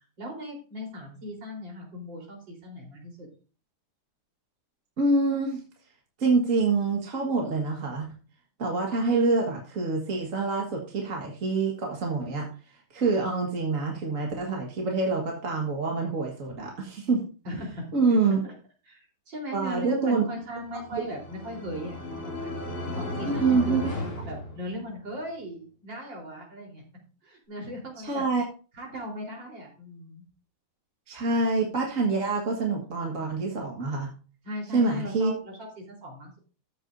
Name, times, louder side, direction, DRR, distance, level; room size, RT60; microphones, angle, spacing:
voice 1, 0.0-3.3 17.4-17.9 18.4-18.5 18.9-22.5 23.0-26.8 27.2-28.2 28.7-30.2 34.4-36.4, equal, 60° right, -1 dB, 4.8 m, -38 dB
voice 2, 5.0-5.6 6.2-8.1 8.6-12.5 12.9-17.2 17.9-18.4 19.5-20.2 20.9-21.0 23.2-23.9 28.0-28.4 31.1-34.1 34.7-35.3, right 3 dB, 40° right, 0 dB, 2.0 m, -26 dB
sound 1, 20.6-25.2, left 2 dB, 65° left, 3.4 m, -35 dB
14.0 x 8.5 x 2.7 m, 0.35 s
omnidirectional pair, 2.2 m